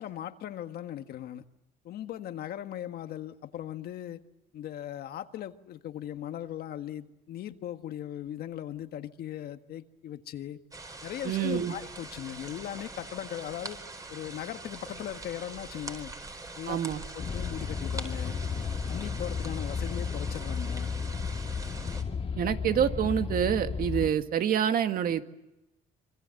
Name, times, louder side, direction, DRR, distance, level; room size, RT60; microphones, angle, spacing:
voice 1, 0.0-1.4 1.8-4.2 4.5-10.6 11.0-13.8 14.1-16.1 16.6-16.8 17.1-18.4 18.9-20.9, left 11 dB, 65° left, 1.7 m, -38 dB
sound 1, 10.7-22.0, right 2 dB, 20° right, 4.5 m, -43 dB
voice 2, 11.2-11.7 16.7-17.0 22.4-25.2, right 9 dB, 60° right, 1.9 m, -27 dB
sound 2, 17.2-24.1, left 5 dB, 35° left, 1.8 m, -33 dB
26.5 x 25.0 x 7.8 m
cardioid pair, 110°, 17 cm